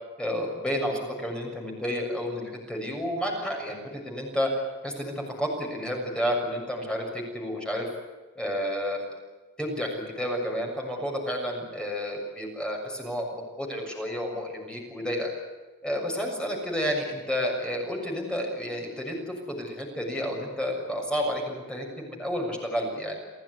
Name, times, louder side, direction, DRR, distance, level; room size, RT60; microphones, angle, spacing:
voice 1, 0.2-4.5 4.8-7.9 8.3-9.1 9.6-15.3 15.8-23.2, equal, 5° left, 0 dB, 6.7 m, -31 dB
28.0 x 17.0 x 9.7 m, 1.3 s
head